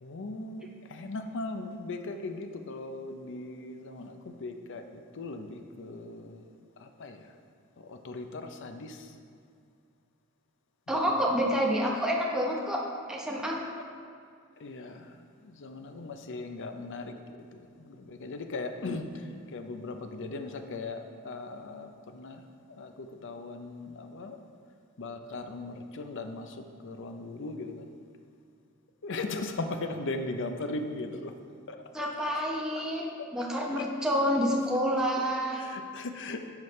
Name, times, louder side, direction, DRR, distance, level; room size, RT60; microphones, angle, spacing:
voice 1, 0.0-6.4 6.8-7.3 7.8-9.1 10.9-11.2 14.6-17.1 17.4-22.4 22.7-24.4 25.0-27.9 29.0-31.3 31.7-32.1 32.7-32.8 33.7-33.9 35.6-36.5, left 2 dB, 55° left, 7 dB, 0.6 m, -38 dB
voice 2, 10.9-12.8 13.1-13.6 31.9-35.6, equal, 5° right, -2 dB, 1.0 m, -28 dB
10.5 x 6.1 x 3.2 m, 2.3 s
head